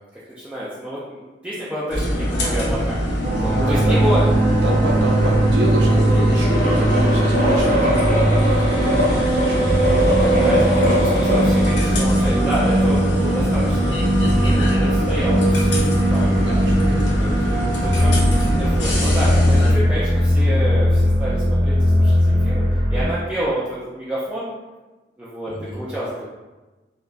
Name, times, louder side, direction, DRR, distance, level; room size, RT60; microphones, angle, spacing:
voice 1, 0.1-4.2 10.0-13.9 14.3-16.6 17.2-22.6 22.9-24.5 25.2-26.2, equal, 10° right, -9 dB, 0.3 m, -29 dB
sound 1, 1.9-19.7, equal, 80° left, 0.7 m, -24 dB
sound 2, 3.2-23.0, right 1 dB, 55° right, 1.0 m, -19 dB
voice 2, 3.5-4.0 4.6-10.5 16.2-17.3 25.5-25.8, equal, 75° right, -1 dB, 0.6 m, -29 dB
sound 3, 6.5-11.6, left 1 dB, 45° left, 1.0 m, -22 dB
2.8 x 2.3 x 2.4 m, 1.2 s
head